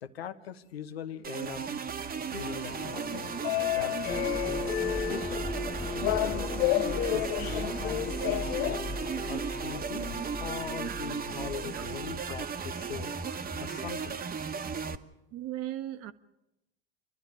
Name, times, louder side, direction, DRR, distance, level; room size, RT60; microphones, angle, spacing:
voice 1, 0.0-1.6 2.3-3.2 3.7-4.3 5.1-5.5 5.8-6.5 6.7-8.4 9.3-13.1 13.6-14.2, left 8 dB, 85° left, 1.2 m, -41 dB
sound 1, 1.2-15.0, right 6 dB, 30° right, 1.3 m, -36 dB
sound 2, 2.3-9.3, left 16 dB, 55° left, 0.8 m, -32 dB
sound 3, 4.1-13.6, left 1 dB, 10° left, 1.7 m, -38 dB
voice 2, 15.3-16.1, right 13 dB, 55° right, 1.4 m, -38 dB
28.0 x 12.0 x 9.7 m
hypercardioid pair, 80°, 30 cm